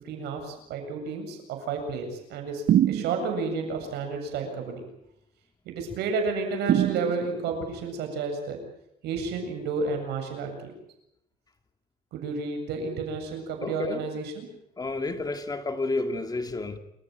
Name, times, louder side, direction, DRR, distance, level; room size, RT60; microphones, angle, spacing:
voice 1, 0.0-4.8 5.7-8.6 9.0-10.7 12.1-14.5, right 4 dB, 80° right, 7.8 m, -31 dB
sound 1, 2.7-3.5 6.7-7.6, right 11 dB, 60° right, 0.9 m, -24 dB
voice 2, 13.6-14.0 14.8-16.8, left 2 dB, 20° left, 2.3 m, -30 dB
28.5 x 15.0 x 9.3 m
cardioid pair, 110°, 17 cm